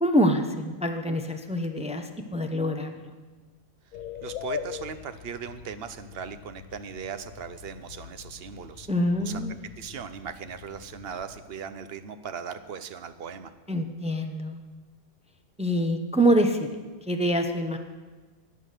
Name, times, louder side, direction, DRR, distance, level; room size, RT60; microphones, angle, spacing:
voice 1, 0.0-3.1 8.9-9.5 13.7-14.6 15.6-17.8, equal, 10° right, 5 dB, 0.4 m, -25 dB
sound 1, 3.9-11.4, left 8 dB, 75° left, 1.1 m, -42 dB
voice 2, 4.2-8.9 9.2-9.4 9.8-13.5, right 7 dB, 55° right, 11 dB, 0.8 m, -38 dB
14.0 x 9.4 x 6.6 m, 1.3 s
omnidirectional pair, 1.5 m